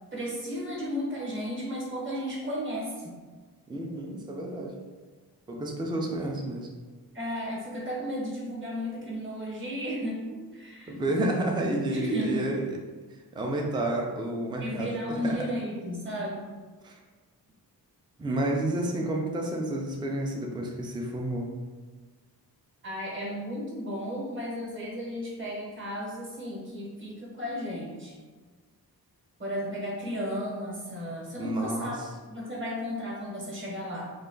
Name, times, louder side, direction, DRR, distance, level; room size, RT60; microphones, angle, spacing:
voice 1, 0.1-3.1 7.1-11.0 11.9-12.4 14.6-16.5 22.8-28.2 29.4-32.0 32.2-34.1, equal, 30° right, -3 dB, 0.9 m, -34 dB
voice 2, 3.7-4.8 5.5-6.7 10.9-12.6 13.3-15.0 15.2-15.4 16.8-17.0 18.2-21.5 31.4-32.1, right 1 dB, 15° right, 0 dB, 0.4 m, -30 dB
3.2 x 2.2 x 3.7 m, 1.4 s
wide cardioid pair, 130°, 38 cm